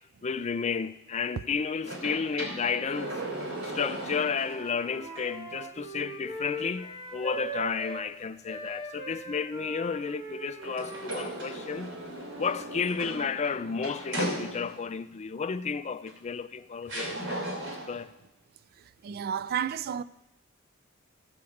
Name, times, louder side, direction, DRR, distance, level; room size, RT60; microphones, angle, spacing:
voice 1, 0.2-3.1 3.6-12.0 12.4-17.4 17.9-18.1, left 5 dB, 35° left, 0.4 m, -32 dB
sound 1, 1.8-4.7 5.2-5.3 10.6-15.0 16.1-16.2 16.9-18.1, right 1 dB, 85° right, 3.0 m, -37 dB
Wind instrument woodwind instrument, 4.2-8.1 8.4-12.8, right 1 dB, 20° right, 2.3 m, -41 dB
voice 2, 19.0-20.0, right 8 dB, 45° right, 0.3 m, -31 dB
14.5 x 4.9 x 7.1 m
head